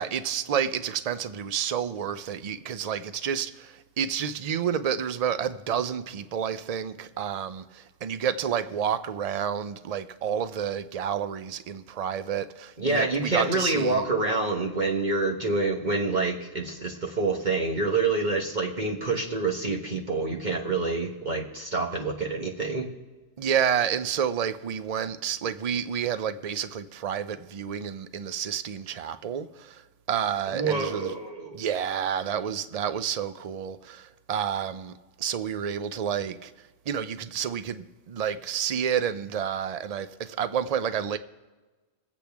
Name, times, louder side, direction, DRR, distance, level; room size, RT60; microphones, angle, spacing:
voice 1, 0.0-14.1 23.4-31.1 31.5-36.5 36.9-41.2, right 8 dB, 60° right, 0.4 m, -30 dB
voice 2, 12.8-22.9 30.5-31.6, right 3 dB, 35° right, 1.2 m, -27 dB
23.0 x 8.3 x 3.5 m
omnidirectional pair, 1.3 m